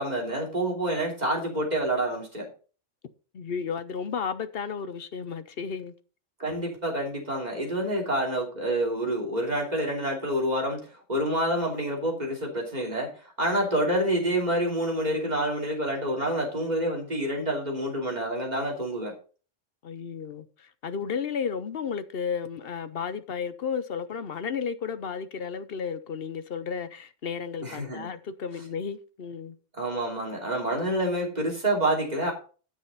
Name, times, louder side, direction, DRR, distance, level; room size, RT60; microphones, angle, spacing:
voice 1, 0.0-2.5 6.4-13.1 13.4-19.1 27.6-28.1 29.8-32.3, right 1 dB, 35° right, 3.1 m, -28 dB
voice 2, 3.3-5.9 19.8-29.6, left 6 dB, 55° left, 0.9 m, -33 dB
9.5 x 7.6 x 4.2 m
omnidirectional pair, 1.3 m